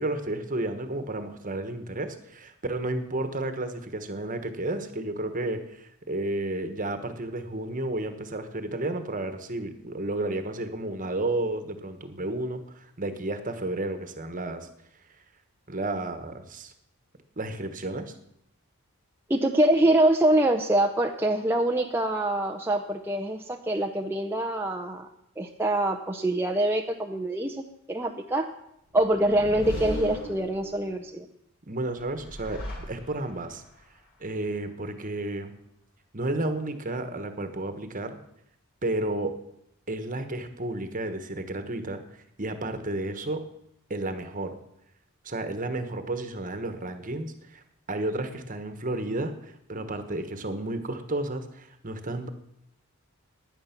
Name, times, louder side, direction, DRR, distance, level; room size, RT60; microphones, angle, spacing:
voice 1, 0.0-14.7 15.7-16.7 17.4-18.1 31.7-33.6 34.2-35.5 36.1-38.2 38.8-39.3 39.9-43.4 43.9-44.6 45.2-47.6 47.9-52.3, right 2 dB, 35° right, 8 dB, 1.3 m, -32 dB
voice 2, 19.3-25.1 25.4-27.6 27.9-28.5 28.9-31.3, right 1 dB, 10° right, 2 dB, 0.7 m, -24 dB
sound 1, 28.9-31.0 32.0-33.5, equal, 45° left, 6.4 m, -37 dB
16.5 x 10.5 x 5.9 m, 0.79 s
head